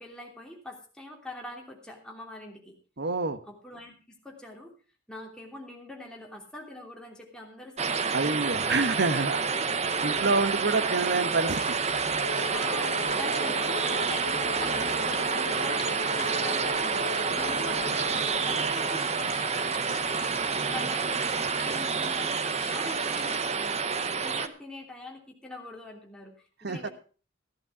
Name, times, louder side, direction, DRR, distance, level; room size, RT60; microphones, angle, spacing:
voice 1, 0.0-2.7 3.5-4.7 5.1-8.2 8.6-9.0 9.3-10.4 10.8-10.9 12.5-23.8 24.2-26.9, left 1 dB, 5° left, -1 dB, 3.1 m, -44 dB
voice 2, 3.0-3.4 8.1-9.4 10.0-11.8 26.6-26.9, right 3 dB, 60° right, 10 dB, 1.2 m, -27 dB
sound 1, 7.8-24.5, right 5 dB, 35° right, 0.8 m, -28 dB
sound 2, 11.3-23.5, left 5 dB, 35° left, 3.0 m, -44 dB
sound 3, 12.2-19.0, left 3 dB, 85° left, 1.5 m, -39 dB
14.5 x 11.5 x 4.7 m, 0.38 s
head